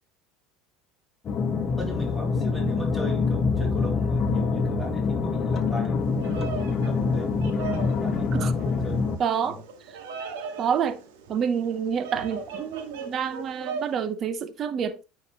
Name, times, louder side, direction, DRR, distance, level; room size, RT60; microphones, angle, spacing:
sound 1, 1.2-9.2, left 4 dB, 35° left, 1.4 m, -25 dB
voice 1, 1.8-6.0 6.3-8.3 8.8-9.0 9.4-9.5, equal, 10° right, 3.1 m, -37 dB
Bird vocalization bird call bird song, 6.0-14.0, right 5 dB, 85° right, 1.9 m, -39 dB
voice 2, 9.2-9.6 10.6-11.0 11.3-15.0, right 7 dB, 40° right, 0.9 m, -28 dB
9.1 x 4.8 x 3.1 m
supercardioid pair, 110°, 0 cm